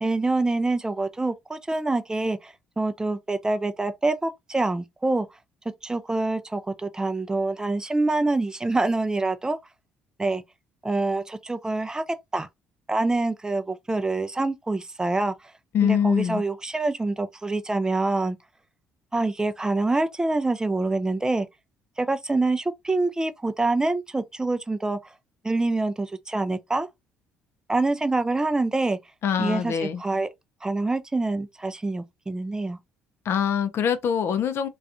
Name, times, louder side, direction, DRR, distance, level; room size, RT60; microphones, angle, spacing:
voice 1, 0.0-5.3 5.8-9.6 10.2-10.4 10.8-12.0 12.3-12.5 12.9-15.3 15.8-18.4 19.1-21.5 22.0-25.0 25.4-26.9 27.7-29.0 29.4-29.7 30.0-30.3 30.6-32.8, right 2 dB, 15° right, 0.4 m, -26 dB
voice 2, 15.7-16.4 29.2-30.0 33.2-34.7, left 8 dB, 50° left, 0.5 m, -24 dB
2.4 x 2.3 x 2.6 m
hypercardioid pair, 50°, 5 cm